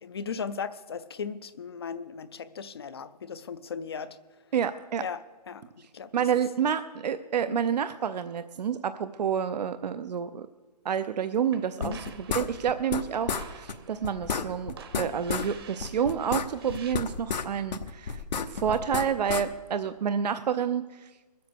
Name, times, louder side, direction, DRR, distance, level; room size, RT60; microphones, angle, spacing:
voice 1, 0.0-4.2 5.0-5.6 5.9-6.4 7.5-7.6 11.8-12.0, left 6 dB, 35° left, 0.4 m, -37 dB
voice 2, 4.5-5.0 5.8-5.9 6.1-10.5 10.8-18.2 18.5-21.1, right 8 dB, 75° right, 0.6 m, -29 dB
sound 1, 11.5-16.9, right 6 dB, 35° right, 0.9 m, -50 dB
sound 2, 11.8-13.0 13.3-13.4 13.7-13.8 14.0-15.5 15.8-17.5 17.7-19.4, left 6 dB, 90° left, 1.0 m, -31 dB
20.0 x 7.8 x 6.8 m
hypercardioid pair, 170°, 21 cm